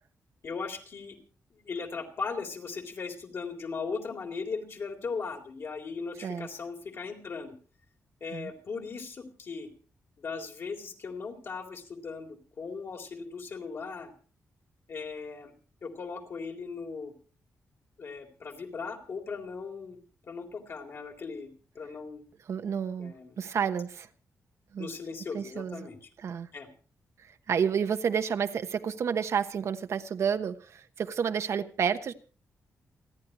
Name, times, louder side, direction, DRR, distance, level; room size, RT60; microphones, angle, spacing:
voice 1, 0.4-1.2 1.5-7.5 8.2-9.7 10.2-14.1 14.9-15.5 15.8-17.1 18.0-20.0 20.3-22.2 23.0-23.4 24.8-26.0 26.5-26.7, left 4 dB, 50° left, 3.6 m, -38 dB
voice 2, 22.5-24.1 24.7-24.9 25.3-25.9 26.2-26.5 27.5-32.1, right 7 dB, 60° right, 1.1 m, -30 dB
29.0 x 10.5 x 3.0 m
wide cardioid pair, 150°, 5 cm